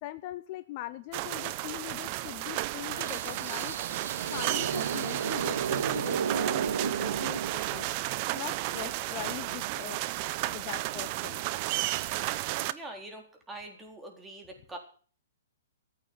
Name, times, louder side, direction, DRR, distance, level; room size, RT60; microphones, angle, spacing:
voice 1, 0.0-3.8 4.3-7.9 8.3-10.0 10.4-11.4, left 16 dB, 40° left, 13 dB, 0.8 m, -41 dB
sound 1, 1.1-12.7, right 17 dB, 40° right, 0.8 m, -33 dB
sound 2, 2.9-8.0, right 7 dB, 70° right, 2.0 m, -33 dB
voice 2, 12.7-14.8, right 2 dB, 10° right, 2 dB, 4.0 m, -44 dB
14.5 x 8.7 x 8.9 m, 0.43 s
hypercardioid pair, 130°, 0 cm